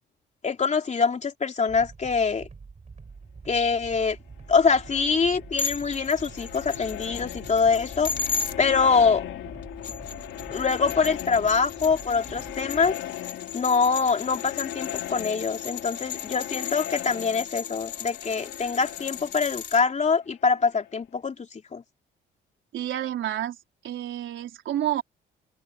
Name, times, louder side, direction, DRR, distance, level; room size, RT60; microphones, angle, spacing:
voice 1, 0.4-2.5 3.5-4.2 4.5-8.1 8.6-9.3 10.5-12.9 13.5-21.3 21.7-21.8, left 5 dB, 35° left, 3.1 m, -24 dB
sound 1, 1.7-12.9, right 5 dB, 35° right, 7.8 m, -46 dB
sound 2, 4.4-21.0, left 12 dB, 85° left, 3.0 m, -39 dB
sound 3, 5.6-8.5 9.6-19.8, left 6 dB, 60° left, 4.6 m, -36 dB
voice 2, 22.7-23.6 23.8-25.0, right 12 dB, 75° right, 4.0 m, -29 dB
open air
cardioid pair, 90°, 20 cm